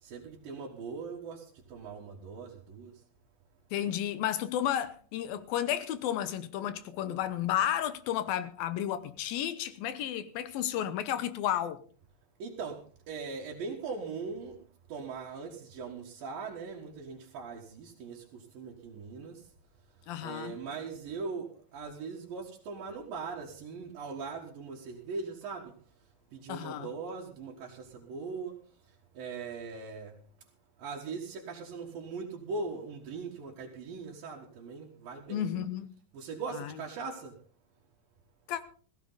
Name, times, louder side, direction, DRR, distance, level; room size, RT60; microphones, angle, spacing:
voice 1, 0.0-2.9 12.4-14.6 14.9-19.5 20.2-25.7 26.3-28.6 29.1-30.2 30.8-35.5 36.1-37.4, right 4 dB, 75° right, 3.3 m, -40 dB
voice 2, 3.7-11.8 20.1-20.6 26.5-26.9 35.3-35.9 36.6-36.7 38.5-38.6, left 11 dB, 80° left, 2.8 m, -32 dB
16.0 x 15.5 x 4.0 m
omnidirectional pair, 4.2 m